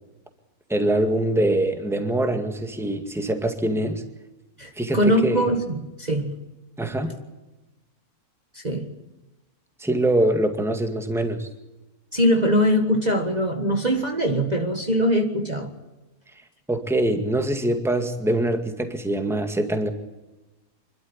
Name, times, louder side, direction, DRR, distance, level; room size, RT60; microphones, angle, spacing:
voice 1, 0.7-4.0 4.8-5.5 6.8-7.1 9.8-11.5 16.7-19.9, right 1 dB, ahead, 6 dB, 1.9 m, -23 dB
voice 2, 4.6-6.3 8.5-8.9 12.1-15.7, equal, 30° right, 3 dB, 1.8 m, -22 dB
26.0 x 12.5 x 10.0 m, 1.1 s
omnidirectional pair, 1.6 m